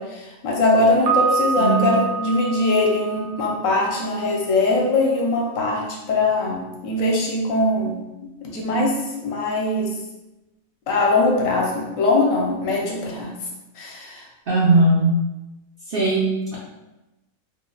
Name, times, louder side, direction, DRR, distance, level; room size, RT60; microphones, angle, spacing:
voice 1, 0.0-8.0 8.4-9.9 10.9-13.3 13.8-14.2, left 2 dB, 70° left, -1 dB, 1.0 m, -21 dB
Piano, 1.1-4.0, right 5 dB, 80° right, 1.1 m, -26 dB
voice 2, 1.6-1.9 14.5-15.2 15.9-16.6, right 2 dB, 55° right, -6 dB, 0.6 m, -19 dB
2.9 x 2.1 x 3.8 m, 1.0 s
omnidirectional pair, 1.5 m